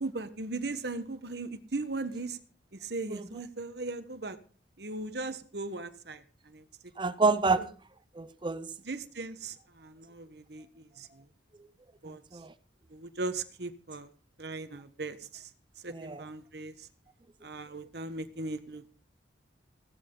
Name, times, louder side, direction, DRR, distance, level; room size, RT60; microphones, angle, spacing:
voice 1, 0.0-2.4 2.7-4.4 4.8-6.6 7.6-7.7 8.8-11.3 12.0-12.2 12.9-14.1 14.4-15.5 15.8-16.9 17.4-18.9, right 3 dB, 60° right, 1.3 m, -38 dB
voice 2, 7.0-7.7 8.1-8.7 12.1-12.5 15.9-16.3, right 4 dB, 25° right, 0.6 m, -29 dB
16.5 x 13.5 x 3.9 m
head